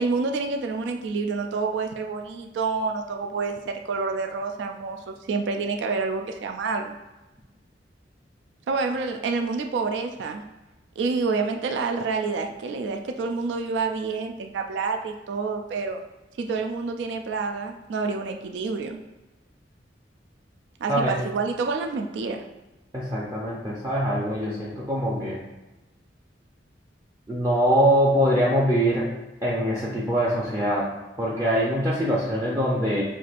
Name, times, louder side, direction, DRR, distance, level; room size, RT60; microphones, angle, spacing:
voice 1, 0.0-6.9 8.7-10.4 11.0-16.0 16.4-19.0 20.8-22.4, right 4 dB, 70° right, 4 dB, 0.3 m, -28 dB
voice 2, 20.9-21.2 22.9-25.4 27.3-29.1 29.4-30.9 31.2-33.0, equal, 15° right, -6 dB, 0.5 m, -23 dB
5.9 x 2.4 x 2.4 m, 1.1 s
head